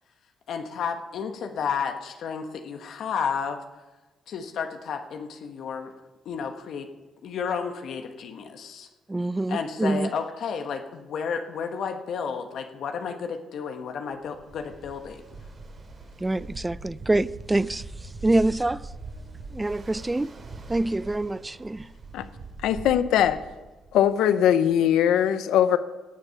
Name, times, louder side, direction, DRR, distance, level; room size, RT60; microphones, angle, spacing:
voice 1, 0.5-3.6 4.3-5.9 6.2-6.9 7.2-8.9 9.5-15.2, left 6 dB, 70° left, 1.2 m, -32 dB
voice 2, 9.1-10.1 16.2-18.8 19.5-20.3 20.7-21.9, right 2 dB, 15° right, 0.3 m, -26 dB
Ocean, 14.2-24.1, right 3 dB, 45° right, 2.6 m, -42 dB
voice 3, 22.6-23.4 23.9-25.8, left 10 dB, 85° left, 0.7 m, -21 dB
18.0 x 6.8 x 5.8 m
cardioid pair, 90°, 0 cm